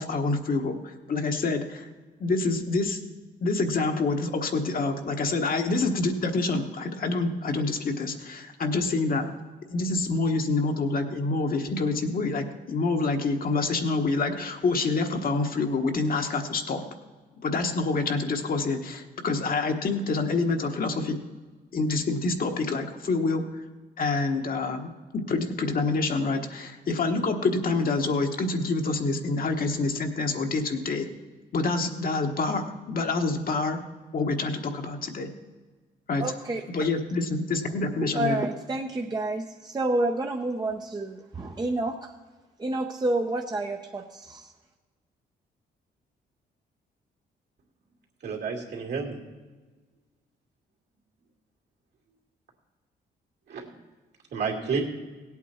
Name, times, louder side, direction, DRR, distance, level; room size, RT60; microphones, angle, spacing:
voice 1, 0.0-1.9 2.2-3.0 3.4-9.2 9.7-16.8 17.4-21.2 21.7-23.6 24.0-31.1 31.5-33.8 34.1-35.3 36.1-36.2 36.7-38.4, left 3 dB, 50° left, 4 dB, 1.2 m, -27 dB
voice 2, 36.2-36.6 38.2-42.0 42.6-44.4, right 2 dB, 20° right, 2 dB, 0.7 m, -29 dB
voice 3, 48.2-49.2 53.5-53.7 54.3-54.8, right 5 dB, 70° right, -1 dB, 2.6 m, -30 dB
17.0 x 8.4 x 4.3 m, 1.3 s
cardioid pair, 95°, 18 cm